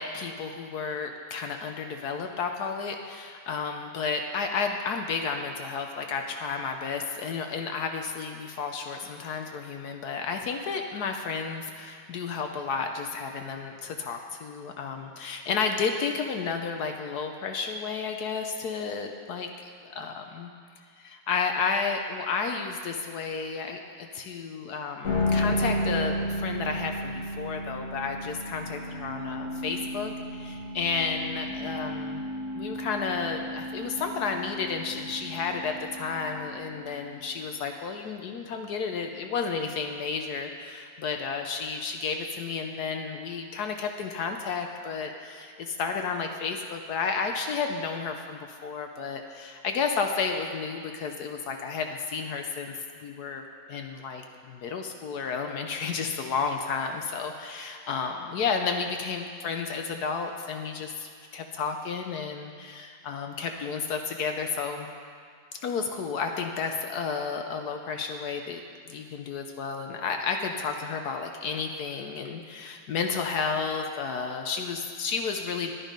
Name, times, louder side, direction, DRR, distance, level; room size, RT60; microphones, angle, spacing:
voice 1, 0.0-20.5 21.0-32.2 32.5-53.4 53.7-64.9 65.6-68.6 68.9-75.7, left 5 dB, 65° left, 4 dB, 1.0 m, -32 dB
sound 1, 25.0-37.3, left 1 dB, 40° left, 2.1 m, -33 dB
11.0 x 10.5 x 5.2 m, 2.1 s
omnidirectional pair, 2.3 m